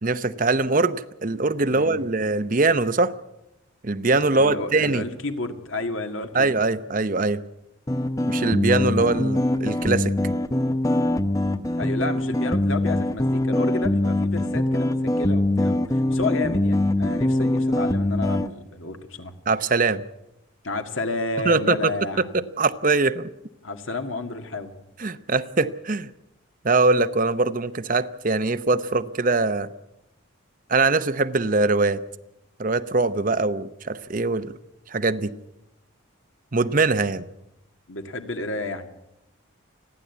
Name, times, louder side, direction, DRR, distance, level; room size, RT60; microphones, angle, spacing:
voice 1, 0.0-3.1 3.8-5.0 6.3-7.4 8.3-10.1 19.5-20.0 21.4-21.9 22.2-23.3 25.0-26.1 26.6-29.7 30.7-32.0 32.6-34.5 34.9-35.3 36.5-37.2, right 3 dB, 40° right, 12 dB, 0.8 m, -22 dB
voice 2, 1.7-2.1 4.4-6.5 11.8-19.3 20.6-22.3 23.6-24.7 37.9-38.9, left 2 dB, 70° left, 6 dB, 2.0 m, -31 dB
sound 1, 7.9-18.5, left 1 dB, 15° left, 0.6 m, -23 dB
29.0 x 10.5 x 8.3 m, 0.88 s
head